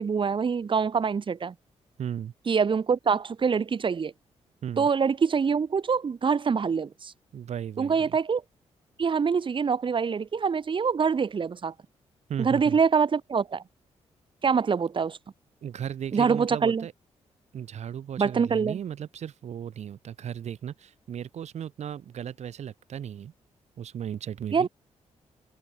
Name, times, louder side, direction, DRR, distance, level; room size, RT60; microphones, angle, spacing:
voice 1, 0.0-1.5 2.5-4.1 4.8-7.1 7.8-8.4 9.0-11.7 12.4-13.6 14.4-15.2 16.1-16.9 18.2-18.8 24.5-24.7, right 6 dB, 45° right, 5.8 m, -25 dB
voice 2, 2.0-2.3 4.6-4.9 7.3-8.2 12.3-12.8 15.6-16.9 17.5-23.3 23.8-24.7, right 9 dB, 70° right, 7.9 m, -36 dB
open air
cardioid pair, 105°, 12 cm